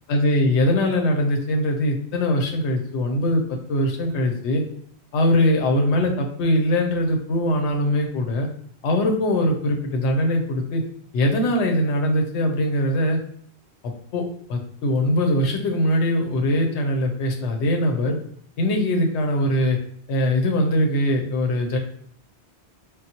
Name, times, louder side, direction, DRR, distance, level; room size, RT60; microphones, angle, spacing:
voice 1, 0.1-4.6 5.1-8.5 8.8-10.8 11.1-13.2 13.8-14.2 14.5-18.2 18.6-19.8 20.1-21.8, left 1 dB, 85° left, 2 dB, 0.9 m, -21 dB
3.8 x 2.0 x 2.7 m, 0.62 s
omnidirectional pair, 1.1 m